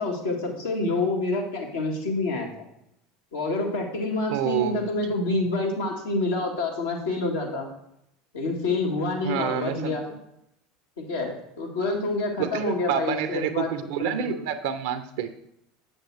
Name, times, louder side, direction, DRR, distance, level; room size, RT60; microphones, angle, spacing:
voice 1, 0.0-2.6 3.3-7.7 8.3-10.0 11.0-13.7 14.0-14.4, left 2 dB, 80° left, -1 dB, 1.8 m, -27 dB
voice 2, 4.3-4.9 9.2-10.0 12.4-15.4, right 9 dB, 70° right, 10 dB, 0.5 m, -28 dB
7.7 x 7.2 x 3.3 m, 0.78 s
hypercardioid pair, 80°, 0 cm